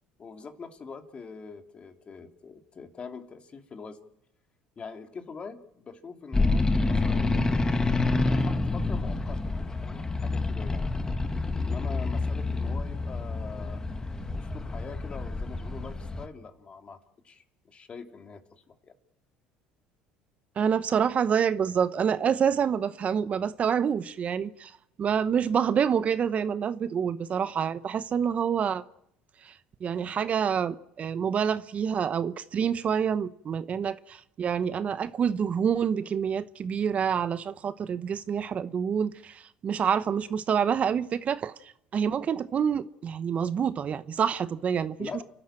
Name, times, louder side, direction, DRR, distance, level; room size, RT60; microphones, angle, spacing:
voice 1, 0.2-4.0 4.8-7.6 8.2-10.9 11.5-13.8 14.3-17.0 17.2-18.9 45.0-45.2, left 5 dB, 35° left, 2.8 m, -43 dB
sound 1, 6.3-16.3, left 3 dB, 20° left, 1.7 m, -28 dB
voice 2, 20.6-24.7 25.0-28.8 29.4-29.5 29.8-45.2, right 7 dB, 45° right, 0.9 m, -27 dB
29.5 x 12.5 x 8.9 m
supercardioid pair, 80°, 3 cm